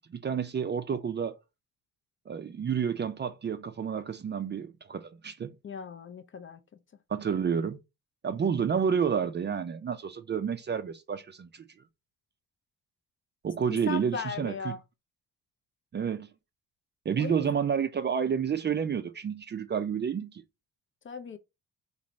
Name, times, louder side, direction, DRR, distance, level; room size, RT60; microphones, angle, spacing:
voice 1, 0.1-1.4 2.3-5.5 7.1-7.8 8.2-11.6 13.4-14.8 15.9-16.3 17.1-20.4, right 7 dB, 30° right, 0.4 m, -30 dB
voice 2, 5.6-6.6 13.9-14.8 17.2-17.5 21.0-21.4, left 6 dB, 35° left, 0.5 m, -37 dB
3.9 x 2.6 x 3.0 m
cardioid pair, 80°, 36 cm